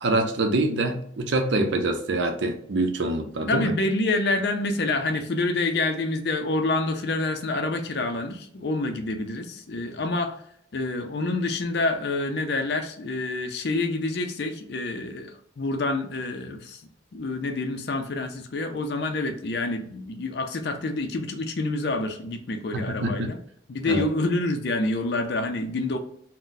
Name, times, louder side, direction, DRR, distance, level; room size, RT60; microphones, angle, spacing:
voice 1, 0.0-3.7 22.7-23.3 23.9-24.1, right 2 dB, 75° right, 5 dB, 0.6 m, -25 dB
voice 2, 3.5-10.4 10.7-23.4 23.7-26.0, left 2 dB, 60° left, 5 dB, 0.4 m, -27 dB
3.8 x 2.1 x 2.6 m, 0.64 s
head